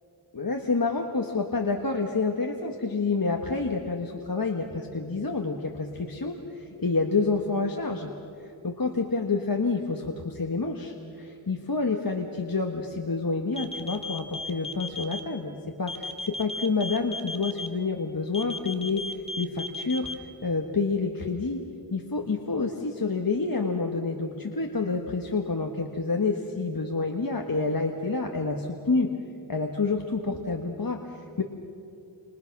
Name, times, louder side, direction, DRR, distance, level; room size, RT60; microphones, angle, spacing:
voice 1, 0.3-8.1 8.4-15.5 15.8-20.1 20.4-21.6 21.9-29.1 29.5-31.4, left 3 dB, 45° left, 2 dB, 1.6 m, -28 dB
sound 1, 13.5-15.2 15.9-17.7 18.3-20.1, left 3 dB, 10° left, 2.0 m, -34 dB
29.5 x 27.0 x 6.0 m, 2.7 s
wide cardioid pair, 65°, 46 cm